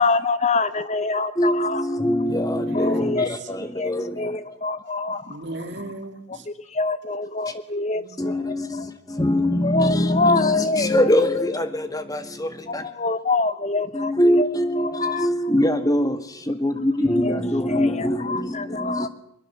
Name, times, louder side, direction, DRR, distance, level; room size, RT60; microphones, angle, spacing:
voice 1, 0.0-1.8 2.7-3.3 3.7-3.9 4.2-5.4 6.5-8.9 9.6-11.5 12.7-14.5 14.8-15.3 17.2-17.4 17.7-19.1, left 3 dB, 30° left, 0.8 m, -25 dB
voice 2, 1.4-4.2 8.2-12.8 13.9-16.2 16.5-19.1, left 1 dB, 15° left, 1.8 m, -23 dB
voice 3, 2.5-3.0 3.6-3.7 5.1-6.5 7.9-8.5, right 1 dB, 55° right, 2.7 m, -38 dB
23.5 x 21.0 x 7.3 m
head